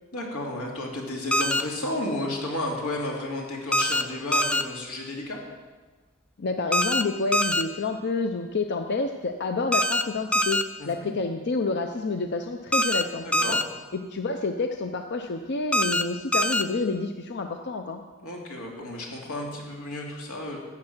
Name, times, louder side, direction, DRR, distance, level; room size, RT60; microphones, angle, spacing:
voice 1, 0.1-5.4 10.8-11.1 13.2-13.6 18.2-20.6, left 1 dB, 85° left, -1 dB, 2.6 m, -32 dB
sound 1, 1.3-1.6 3.7-4.0 4.3-4.6 6.7-7.0 7.3-7.6 9.7-10.0 10.3-10.6 12.7-13.0 13.3-13.6 15.7-16.0 16.3-16.6, left 1 dB, 5° left, 0.3 m, -23 dB
voice 2, 6.4-13.6 13.9-18.0, left 3 dB, 50° left, 6 dB, 0.6 m, -29 dB
12.0 x 8.7 x 6.0 m, 1.3 s
head